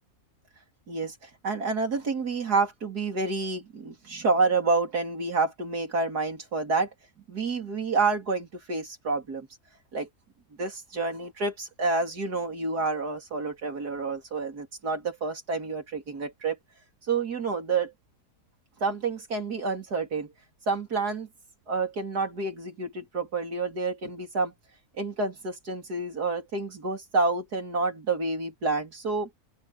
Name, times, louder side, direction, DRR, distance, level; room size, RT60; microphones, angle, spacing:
voice 1, 0.9-6.9 7.3-9.5 9.9-10.1 10.6-16.6 17.1-17.9 18.8-20.3 20.7-21.3 21.7-24.5 25.0-29.3, right 3 dB, 90° right, 4.0 m, -29 dB
open air
omnidirectional pair, 1.6 m